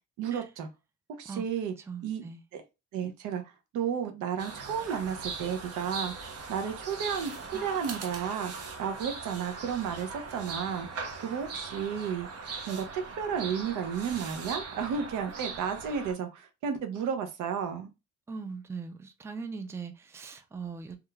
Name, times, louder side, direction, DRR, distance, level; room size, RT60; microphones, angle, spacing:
voice 1, 0.2-0.7 1.2-1.7 2.0-2.2 2.9-3.4 3.7-7.3 7.6-8.5 8.8-12.3 12.7-17.9, right 7 dB, 85° right, 0.6 m, -32 dB
voice 2, 1.8-2.4 18.3-21.0, right 5 dB, 10° right, 0.3 m, -40 dB
sound 1, 4.4-16.1, right 4 dB, 55° right, 0.7 m, -40 dB
3.0 x 2.3 x 2.2 m
cardioid pair, 90°, 30 cm